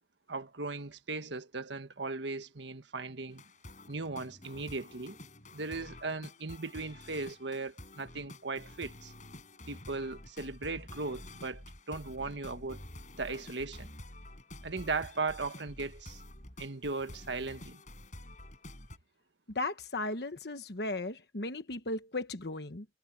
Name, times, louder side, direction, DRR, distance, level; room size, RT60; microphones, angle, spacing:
voice 1, 0.3-3.4 3.9-5.2 5.5-9.1 9.7-12.8 13.2-13.9 14.6-16.2 16.6-17.8, right 3 dB, 90° right, 1.5 m, -38 dB
sound 1, 3.3-19.0, left 1 dB, 45° left, 5.0 m, -49 dB
voice 2, 19.5-22.9, left 2 dB, 65° left, 1.2 m, -36 dB
head